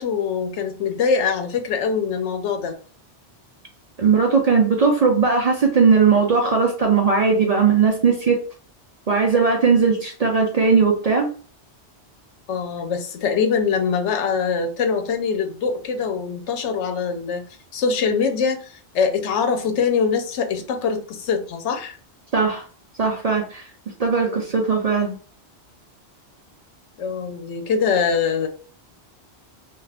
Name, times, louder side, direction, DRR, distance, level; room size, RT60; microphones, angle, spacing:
voice 1, 0.0-2.7 12.5-17.4 17.7-22.0 24.2-24.5 27.0-28.5, left 6 dB, 85° left, 6 dB, 0.9 m, -23 dB
voice 2, 4.0-8.4 9.1-11.3 22.3-22.6 23.0-23.7 24.0-25.2, right 5 dB, 50° right, 1 dB, 0.4 m, -18 dB
2.4 x 2.4 x 3.3 m, 0.41 s
omnidirectional pair, 1.2 m